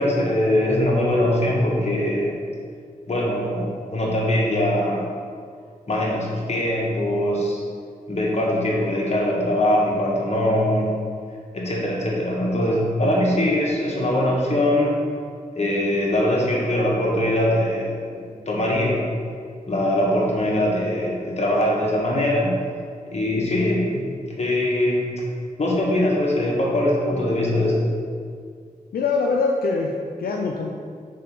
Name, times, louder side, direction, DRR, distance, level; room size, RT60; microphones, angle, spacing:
voice 1, 0.0-2.4 3.1-5.0 5.9-7.6 8.1-10.9 11.5-14.9 15.5-19.0 19.7-22.6 23.1-24.1 24.4-25.0 25.6-27.8, left 1 dB, 45° left, -3 dB, 1.5 m, -22 dB
voice 2, 28.9-30.7, left 4 dB, 85° left, 0 dB, 0.5 m, -23 dB
4.2 x 4.1 x 5.4 m, 2.1 s
cardioid pair, 50°, 15 cm